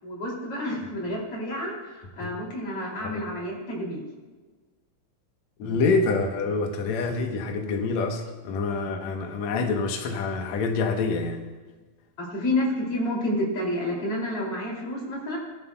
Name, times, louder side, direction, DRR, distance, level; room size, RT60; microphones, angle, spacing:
voice 1, 0.0-4.0 12.2-15.4, left 1 dB, 50° left, -2 dB, 3.8 m, -29 dB
voice 2, 5.6-11.5, left 4 dB, 70° left, 3 dB, 2.3 m, -26 dB
18.5 x 13.0 x 2.3 m, 1.3 s
omnidirectional pair, 3.4 m